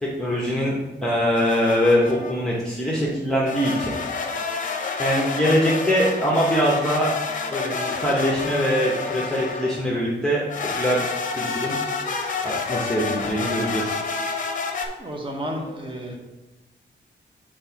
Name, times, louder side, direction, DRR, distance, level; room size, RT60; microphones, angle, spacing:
voice 1, 0.0-3.9 5.0-7.1 7.5-10.4 10.8-11.0 11.3-11.8 12.4-14.0, equal, 5° left, -5 dB, 0.9 m, -23 dB
sound 1, 1.4-2.4 3.5-9.9 10.5-14.9, left 4 dB, 45° left, 0.7 m, -29 dB
voice 2, 15.0-16.2, equal, 25° right, 1 dB, 1.0 m, -31 dB
4.4 x 4.3 x 5.6 m, 1.1 s
wide cardioid pair, 145°, 19 cm